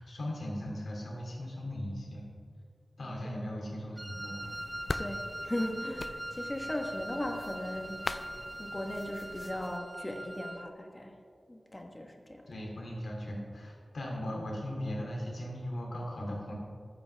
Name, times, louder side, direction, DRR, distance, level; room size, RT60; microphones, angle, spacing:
voice 1, 0.0-2.3 3.0-4.4 12.5-16.5, left 1 dB, 85° left, -2 dB, 2.6 m, -38 dB
Wind instrument woodwind instrument, 4.0-10.7, right 1 dB, 20° right, 0.5 m, -41 dB
sound 1, 4.4-9.8, left 3 dB, 50° left, 0.3 m, -42 dB
voice 2, 5.0-8.1 8.6-11.2 11.5-12.4, left 1 dB, 25° left, 3 dB, 1.2 m, -38 dB
13.5 x 9.4 x 3.4 m, 2.2 s
wide cardioid pair, 95°, 0 cm